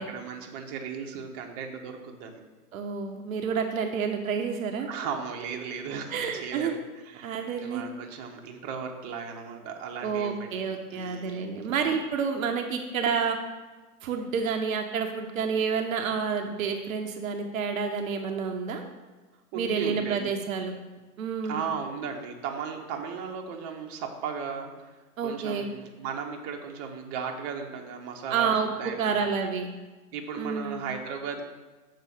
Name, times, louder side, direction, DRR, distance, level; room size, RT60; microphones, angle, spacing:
voice 1, 0.0-2.4 4.8-10.5 10.9-11.6 19.5-20.3 21.4-24.9 25.2-28.5 28.8-29.3 30.1-31.4, right 6 dB, 30° right, 2 dB, 1.0 m, -36 dB
voice 2, 2.7-4.9 6.1-6.8 7.2-7.8 10.0-13.4 14.0-18.8 19.5-20.8 21.2-21.6 25.2-25.7 28.3-29.7 30.4-30.8, right 6 dB, 60° right, 3 dB, 0.9 m, -29 dB
6.8 x 4.1 x 6.4 m, 1.2 s
hypercardioid pair, 110°, 46 cm